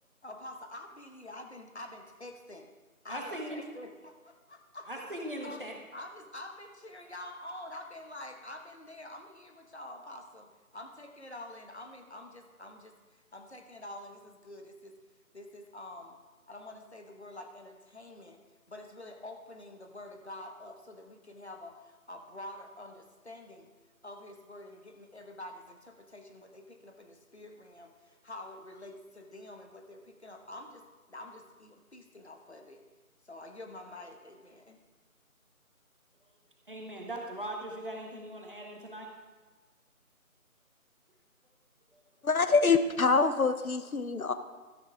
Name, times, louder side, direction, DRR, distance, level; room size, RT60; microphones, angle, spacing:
voice 1, 0.2-2.7 3.0-4.9 5.4-5.6 5.9-10.5 10.7-12.9 13.3-14.9 15.3-16.2 16.5-18.4 18.7-23.7 24.0-30.8 31.1-32.8 33.2-34.8, left 1 dB, 50° left, 4 dB, 1.2 m, -47 dB
voice 2, 3.1-3.6 4.9-5.7 36.7-39.1 41.9-42.0, right 1 dB, 35° right, 0 dB, 1.5 m, -39 dB
voice 3, 42.2-44.3, left 4 dB, 75° left, 11 dB, 0.8 m, -25 dB
13.0 x 9.1 x 3.6 m, 1.3 s
figure-of-eight pair, 170°, 43 cm